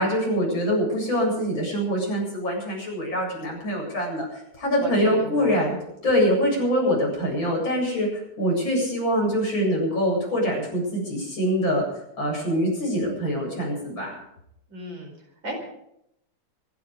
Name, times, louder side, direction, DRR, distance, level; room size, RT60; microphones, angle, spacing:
voice 1, 0.0-5.8 6.0-11.8 12.2-14.1, equal, 80° left, -2 dB, 8.8 m, -24 dB
voice 2, 4.8-5.6 14.7-15.1 15.4-15.7, right 1 dB, 70° right, 2 dB, 5.3 m, -35 dB
26.0 x 11.0 x 5.2 m, 0.77 s
omnidirectional pair, 2.1 m